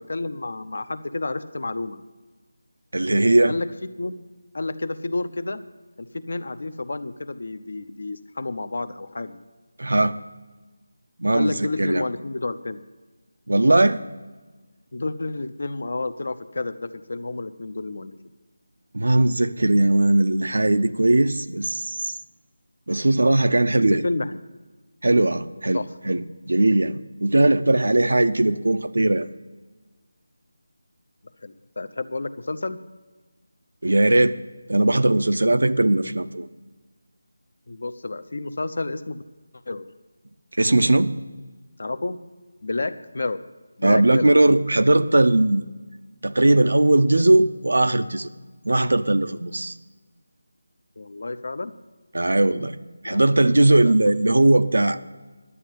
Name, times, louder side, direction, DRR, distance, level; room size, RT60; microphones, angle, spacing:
voice 1, 0.0-2.0 3.5-4.1 4.5-5.6 6.0-9.4 11.3-12.8 14.9-18.2 23.7-24.4 25.7-25.9 31.4-32.8 37.7-39.2 39.7-39.8 41.8-42.2 42.6-43.4 43.8-44.3 51.0-51.7 53.0-53.2 53.8-54.0, left 2 dB, 60° left, 12 dB, 0.8 m, -30 dB
voice 2, 2.9-3.6 9.8-10.2 11.2-11.5 11.8-12.1 13.5-14.0 18.9-22.2 22.9-24.0 25.0-29.3 33.8-34.4 34.7-36.5 40.6-41.1 43.8-45.7 46.2-48.3 48.6-49.7 52.1-52.7 53.0-55.0, right 2 dB, 80° right, 11 dB, 0.7 m, -19 dB
11.0 x 8.2 x 7.5 m, 1.3 s
figure-of-eight pair, 170°, 0 cm